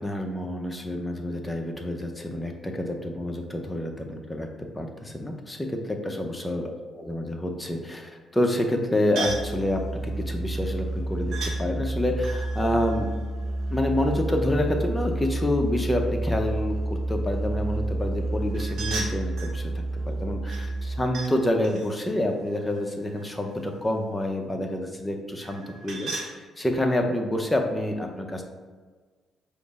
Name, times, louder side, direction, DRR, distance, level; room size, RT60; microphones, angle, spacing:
voice 1, 0.0-4.5 4.8-6.6 6.9-13.1 13.7-28.4, left 1 dB, 15° left, 3 dB, 0.6 m, -28 dB
sound 1, 9.2-9.5 11.3-11.6 12.2-14.0 18.5-19.6 20.5-21.3 21.6-23.5 25.4-26.3, right 3 dB, 75° right, 0.9 m, -37 dB
Musical instrument, 9.3-21.3, right 2 dB, 30° right, 0.5 m, -30 dB
5.0 x 2.0 x 4.7 m, 1.4 s
cardioid pair, 90°, 0 cm